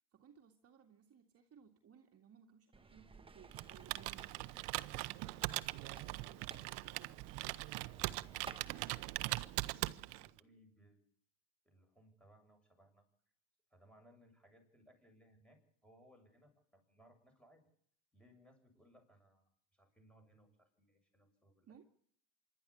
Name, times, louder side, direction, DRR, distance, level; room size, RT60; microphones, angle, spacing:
voice 1, 0.1-4.5 5.4-7.1 21.7-21.8, right 8 dB, 35° right, 4 dB, 2.2 m, -62 dB
sound 1, 2.7-8.9, right 4 dB, 15° right, 1.3 m, -57 dB
Computer keyboard, 3.5-10.4, right 21 dB, 65° right, 1.0 m, -41 dB
voice 2, 5.7-6.6 7.9-11.0 11.6-13.1 13.7-17.7 18.1-21.7, right 1 dB, 5° left, 4 dB, 7.6 m, -66 dB
25.5 x 12.5 x 8.6 m, 0.66 s
supercardioid pair, 115°, 41 cm